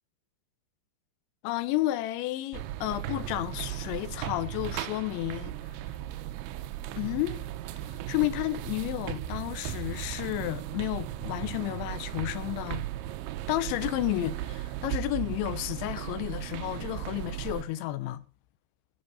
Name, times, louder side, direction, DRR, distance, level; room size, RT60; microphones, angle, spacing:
voice 1, 1.4-5.5 7.0-7.4 8.1-12.8 13.5-18.2, left 16 dB, 90° left, 3.1 m, -31 dB
sound 1, 2.5-17.6, right 13 dB, 85° right, 3.0 m, -36 dB
14.0 x 6.4 x 5.4 m
omnidirectional pair, 5.1 m